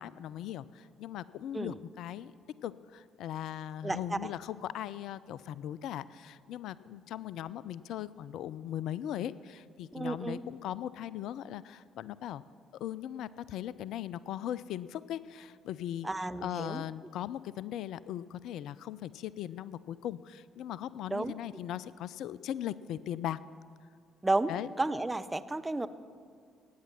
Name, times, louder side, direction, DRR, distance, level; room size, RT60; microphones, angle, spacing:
voice 1, 0.0-2.3 2.6-12.4 12.8-16.1 16.4-23.4 24.5-24.7, left 11 dB, 60° left, 18 dB, 0.3 m, -39 dB
voice 2, 3.8-4.3 9.9-10.4 16.0-16.8 21.1-21.3 24.2-24.5 24.8-25.9, right 2 dB, 15° right, 11 dB, 0.7 m, -32 dB
16.5 x 9.2 x 6.0 m, 2.1 s
figure-of-eight pair, 50°, 0 cm